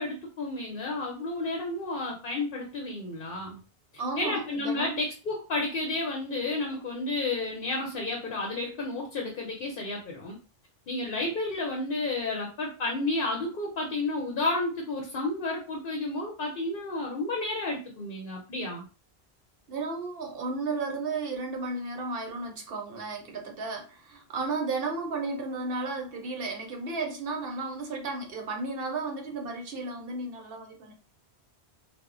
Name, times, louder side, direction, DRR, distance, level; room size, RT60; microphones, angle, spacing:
voice 1, 0.0-3.6 4.2-10.4 10.9-18.9, left 2 dB, 60° left, 0.8 m, -31 dB
voice 2, 4.0-5.0 19.7-30.9, right 3 dB, 65° right, 0.8 m, -33 dB
2.1 x 2.0 x 3.6 m
omnidirectional pair, 1.1 m